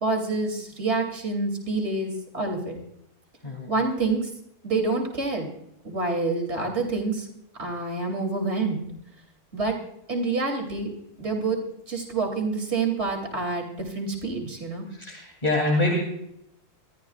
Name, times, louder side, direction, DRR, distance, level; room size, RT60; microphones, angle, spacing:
voice 1, 0.0-2.8 3.7-4.3 4.6-5.5 5.8-7.3 7.6-8.9 9.5-9.8 10.1-10.9 11.2-11.6 11.9-14.9, right 3 dB, 45° right, 2 dB, 3.3 m, -27 dB
voice 2, 14.9-16.0, left 1 dB, 25° left, -1 dB, 3.1 m, -25 dB
26.0 x 13.5 x 2.4 m, 0.77 s
omnidirectional pair, 1.6 m